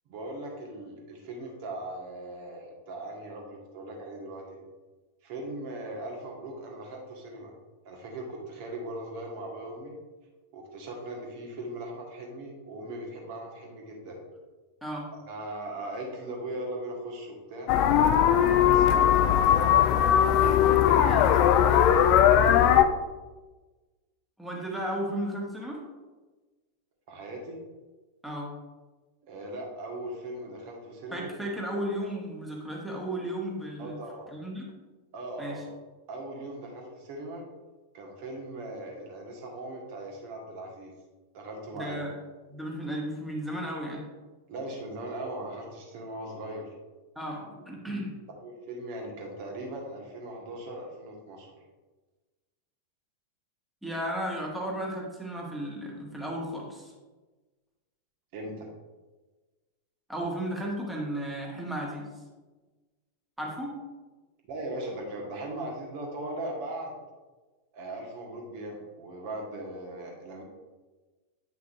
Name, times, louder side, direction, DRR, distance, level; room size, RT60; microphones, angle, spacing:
voice 1, 0.0-4.6 5.2-7.5 7.8-9.9 10.5-14.2 15.3-17.7 18.6-22.9 27.1-27.6 29.2-31.3 33.8-34.3 35.1-35.6 36.1-37.5 37.9-40.9 41.3-42.0 44.5-46.7 48.4-51.5 58.3-58.7 64.5-66.9 67.7-70.4, right 1 dB, 45° right, 0 dB, 1.6 m, -39 dB
sound 1, 17.7-22.8, left 10 dB, 40° left, 0.4 m, -20 dB
voice 2, 24.4-25.8 28.2-28.5 31.1-34.0 34.3-34.7 35.4-35.6 41.7-42.1 42.5-44.1 47.1-48.1 53.8-56.9 60.1-62.1 63.4-63.8, right 1 dB, 5° right, -2 dB, 1.5 m, -34 dB
8.3 x 5.6 x 2.6 m, 1.2 s
figure-of-eight pair, 90°, 0 cm